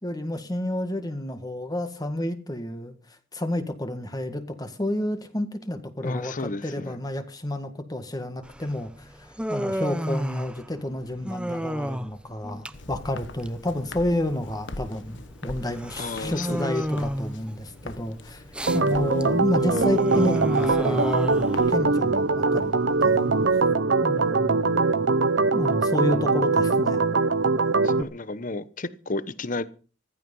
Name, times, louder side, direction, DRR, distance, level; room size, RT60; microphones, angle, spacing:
voice 1, 0.0-2.9 3.3-18.4 18.7-22.7 23.0-23.3 24.0-24.8 25.5-27.0, left 1 dB, 20° left, 8 dB, 1.8 m, -30 dB
voice 2, 6.0-7.0 16.0-16.6 27.8-29.7, left 2 dB, 45° left, 15 dB, 1.0 m, -32 dB
Human voice, 8.4-23.7, equal, 5° right, 0.8 m, -33 dB
Walk footsteps, 12.7-21.8, left 2 dB, 80° left, 1.4 m, -43 dB
Organ, 18.7-28.0, right 3 dB, 80° right, 0.9 m, -22 dB
15.5 x 14.0 x 5.6 m, 0.38 s
head